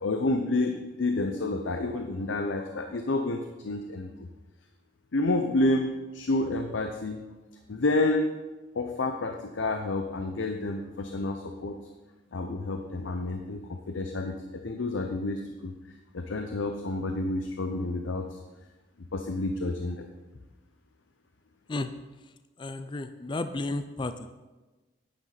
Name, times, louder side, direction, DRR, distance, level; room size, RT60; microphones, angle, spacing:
voice 1, 0.0-4.3 5.1-7.2 7.7-8.3 8.7-11.8 12.3-15.7 16.1-18.4 19.1-20.1, left 2 dB, 85° left, 5 dB, 0.7 m, -29 dB
voice 2, 22.6-24.1, left 2 dB, 25° left, 10 dB, 0.4 m, -32 dB
10.5 x 9.5 x 4.0 m, 1.2 s
head